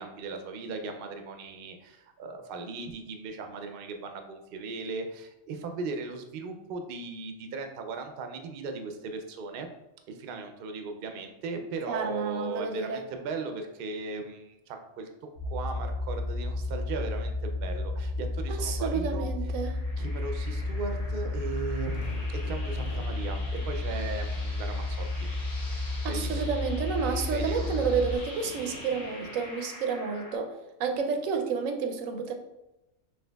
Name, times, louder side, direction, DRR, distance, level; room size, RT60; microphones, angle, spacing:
voice 1, 0.0-9.7 10.1-15.1 15.4-23.4 23.7-25.3 26.1-26.6 27.3-27.7, right 4 dB, 60° right, 5 dB, 0.6 m, -38 dB
voice 2, 11.9-13.0 18.5-19.8 26.0-32.3, right 5 dB, 90° right, 5 dB, 1.0 m, -30 dB
sound 1, 15.4-28.2, left 2 dB, 80° left, 1.1 m, -32 dB
sound 2, 19.6-30.4, left 1 dB, 30° left, 1.3 m, -46 dB
sound 3, 20.4-29.4, left 2 dB, 60° left, 1.0 m, -48 dB
5.8 x 2.7 x 2.3 m, 0.95 s
omnidirectional pair, 1.3 m